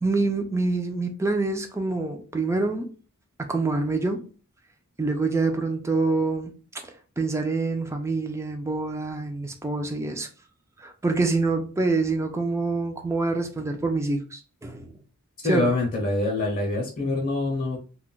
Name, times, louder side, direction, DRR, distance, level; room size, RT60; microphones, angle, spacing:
voice 1, 0.0-2.9 3.5-4.3 5.0-6.5 7.2-10.3 10.8-14.9 15.4-15.7, right 3 dB, 15° right, 0.3 m, -26 dB
voice 2, 15.4-17.8, left 2 dB, 40° left, 0.6 m, -25 dB
2.2 x 2.0 x 3.7 m
head